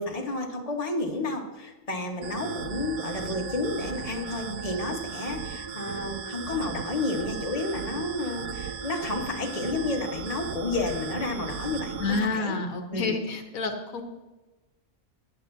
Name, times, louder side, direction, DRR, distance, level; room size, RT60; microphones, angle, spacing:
voice 1, 0.0-12.6 12.9-13.1, left 2 dB, 25° left, 1 dB, 1.4 m, -31 dB
sound 1, 2.2-12.2, right 6 dB, 85° right, 1.3 m, -36 dB
voice 2, 12.0-14.0, left 3 dB, 75° left, 5 dB, 1.4 m, -29 dB
16.5 x 9.9 x 2.7 m, 1.1 s
omnidirectional pair, 1.5 m